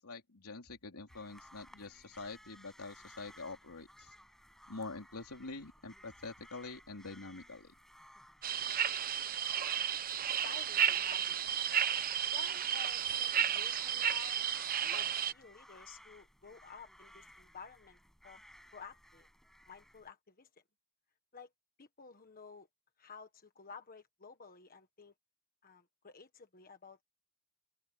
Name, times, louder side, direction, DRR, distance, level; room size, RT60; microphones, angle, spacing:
voice 1, 0.0-4.1 4.7-7.7, left 3 dB, 75° left, 3.4 m, -46 dB
sound 1, 1.1-20.1, equal, ahead, 7.2 m, -59 dB
sound 2, 8.4-15.3, right 9 dB, 40° right, 0.9 m, -33 dB
voice 2, 10.1-11.8 12.3-14.4 14.8-18.0 18.2-18.4 18.7-19.3 19.7-20.5 21.3-21.5 21.8-22.7 23.0-25.1 25.6-27.0, left 5 dB, 40° left, 1.4 m, -53 dB
open air
head